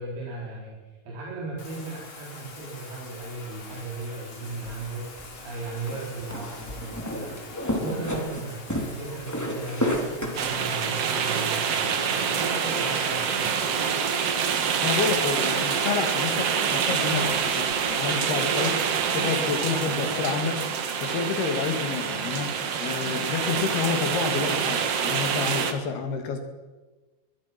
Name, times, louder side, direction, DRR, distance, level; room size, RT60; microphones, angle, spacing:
voice 1, 0.0-7.4 7.7-13.5 13.8-13.9, right 3 dB, 75° right, -5 dB, 6.1 m, -37 dB
Bathtub (filling or washing), 1.6-18.1, left 3 dB, 50° left, 5.0 m, -44 dB
sound 1, 4.5-10.6, equal, 5° left, 2.6 m, -32 dB
sound 2, 10.4-25.7, right 6 dB, 55° right, 1.9 m, -26 dB
voice 2, 14.8-18.8 19.1-22.5 22.8-26.4, left 5 dB, 80° left, 6 dB, 4.2 m, -29 dB
22.5 x 21.0 x 6.0 m, 1.2 s
omnidirectional pair, 4.5 m